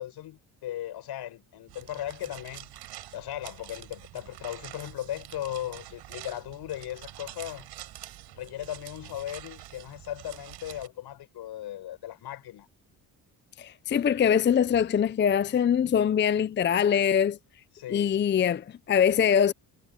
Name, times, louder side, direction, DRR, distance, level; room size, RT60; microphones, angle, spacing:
voice 1, 0.0-2.7 3.1-7.7 8.3-12.7 17.7-18.2, left 12 dB, 75° left, 6.1 m, -37 dB
sound 1, 1.7-10.9, right 15 dB, 90° right, 5.1 m, -46 dB
voice 2, 13.6-17.4 17.9-19.5, left 8 dB, 30° left, 0.5 m, -23 dB
cardioid pair, 115°, 39 cm